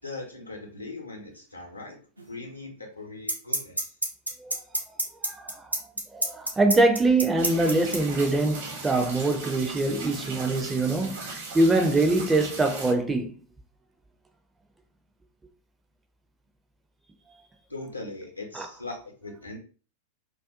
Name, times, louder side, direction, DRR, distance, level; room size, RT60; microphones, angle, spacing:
voice 1, 0.0-2.0 2.3-3.9 17.7-19.6, left 2 dB, 85° left, 0.7 m, -40 dB
sound 1, 2.2-2.3 3.3-8.0, right 1 dB, 85° right, 0.5 m, -26 dB
voice 2, 5.3-5.7 6.1-13.3 18.5-18.7, right 2 dB, 10° right, 0.4 m, -24 dB
Southern Utah Summer Thunderstorm, 7.4-12.9, right 3 dB, 55° right, 0.8 m, -38 dB
2.4 x 2.2 x 2.5 m
figure-of-eight pair, 90°, 0 cm